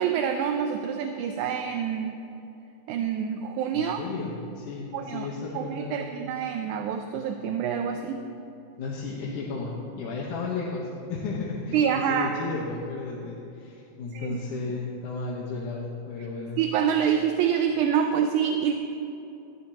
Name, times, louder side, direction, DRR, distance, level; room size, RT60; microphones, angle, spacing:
voice 1, 0.0-2.2 2.9-4.0 4.9-8.2 11.7-12.4 14.1-14.4 16.6-18.7, right 8 dB, 80° right, 5 dB, 2.0 m, -26 dB
voice 2, 3.7-6.1 8.8-16.6, left 4 dB, 75° left, -3 dB, 2.7 m, -34 dB
19.5 x 14.5 x 3.0 m, 2.8 s
omnidirectional pair, 3.7 m